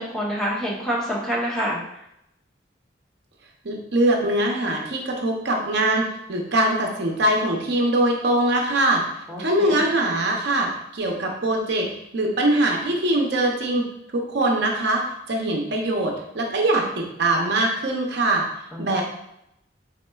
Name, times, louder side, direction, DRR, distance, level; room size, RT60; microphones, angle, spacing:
voice 1, 0.0-1.8 9.3-9.8 18.7-18.9, equal, 5° left, -6 dB, 0.7 m, -27 dB
voice 2, 3.6-9.0 9.4-13.9 14.1-18.5 18.8-19.0, right 1 dB, 65° right, 1 dB, 0.6 m, -22 dB
4.0 x 3.6 x 2.3 m, 0.79 s
head